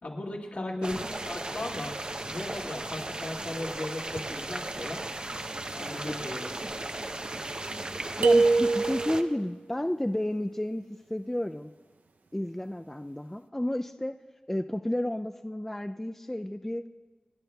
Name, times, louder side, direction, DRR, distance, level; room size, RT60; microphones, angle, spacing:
voice 1, 0.0-1.9 2.2-5.1 5.7-6.5, left 2 dB, 65° left, -2 dB, 2.1 m, -37 dB
voice 2, 0.6-1.0 6.1-6.2 8.2-11.7 12.3-14.2 14.5-16.8, left 1 dB, 10° left, 7 dB, 0.3 m, -32 dB
sound 1, 0.8-9.2, right 2 dB, 35° right, 0.6 m, -36 dB
sound 2, 8.2-9.3, right 3 dB, 75° right, 0.5 m, -22 dB
28.5 x 11.0 x 2.3 m, 1.3 s
wide cardioid pair, 80°, 3 cm